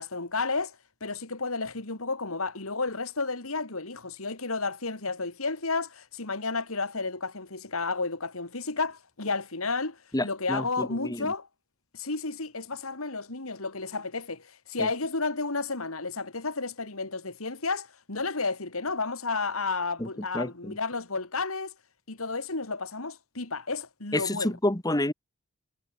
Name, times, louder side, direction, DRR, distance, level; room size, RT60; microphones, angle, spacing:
voice 1, 0.0-11.5 11.9-21.7 22.1-24.6, left 3 dB, 85° left, 2.9 m, -32 dB
voice 2, 10.1-11.3 14.8-14.9 20.0-20.1 20.3-20.8 24.1-25.1, left 1 dB, 20° left, 1.8 m, -29 dB
head